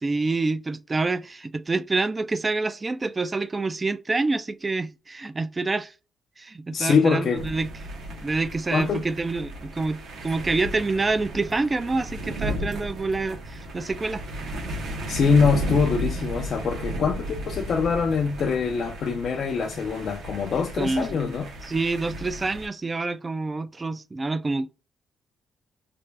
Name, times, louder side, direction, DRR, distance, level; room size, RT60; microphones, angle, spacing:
voice 1, 0.0-5.9 6.4-7.7 8.1-14.2 20.8-21.1 21.6-24.7, right 3 dB, 25° right, 0.3 m, -27 dB
voice 2, 6.7-7.4 8.7-9.0 15.1-21.5, left 5 dB, 55° left, 0.5 m, -24 dB
sound 1, 7.4-22.7, right 1 dB, 75° right, 1.0 m, -34 dB
3.3 x 2.4 x 3.2 m
cardioid pair, 90°, 0 cm